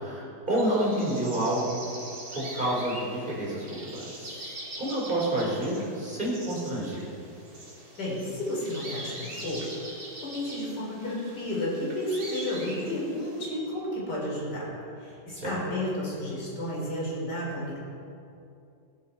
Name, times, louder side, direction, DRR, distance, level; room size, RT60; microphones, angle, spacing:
voice 1, 0.0-1.8 2.3-7.1 15.4-15.6, right 1 dB, 25° right, -5 dB, 4.2 m, -29 dB
sound 1, 0.5-13.5, right 1 dB, 70° right, 3.6 m, -43 dB
voice 2, 8.0-14.7 15.0-17.8, left 1 dB, 65° left, -5 dB, 4.5 m, -32 dB
16.0 x 14.0 x 4.3 m, 2.5 s
omnidirectional pair, 2.0 m